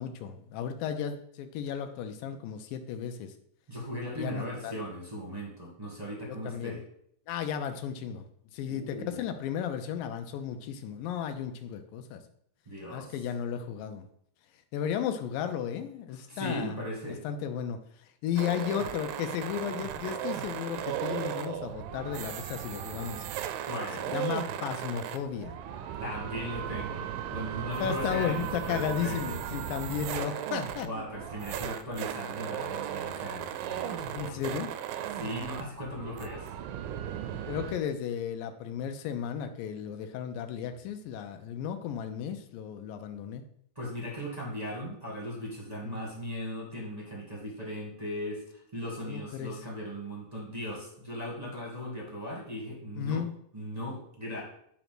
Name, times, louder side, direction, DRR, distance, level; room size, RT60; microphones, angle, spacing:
voice 1, 0.0-3.3 4.1-4.8 6.3-6.8 7.3-8.3 8.5-12.2 12.9-14.1 14.7-16.8 17.2-23.2 24.1-25.5 27.8-31.0 34.1-34.7 37.1-37.2 37.5-43.4 45.8-46.0 49.1-49.5 53.0-53.3, left 8 dB, 85° left, 7 dB, 2.4 m, -34 dB
voice 2, 3.7-6.8 8.7-9.3 12.6-13.2 16.3-17.2 23.6-24.1 26.0-29.4 30.8-34.6 35.1-36.5 43.7-53.2 53.5-54.4, equal, 15° right, -3 dB, 1.3 m, -38 dB
sound 1, 18.4-37.8, right 10 dB, 90° right, 2.3 m, -36 dB
9.6 x 3.9 x 6.0 m, 0.69 s
omnidirectional pair, 3.9 m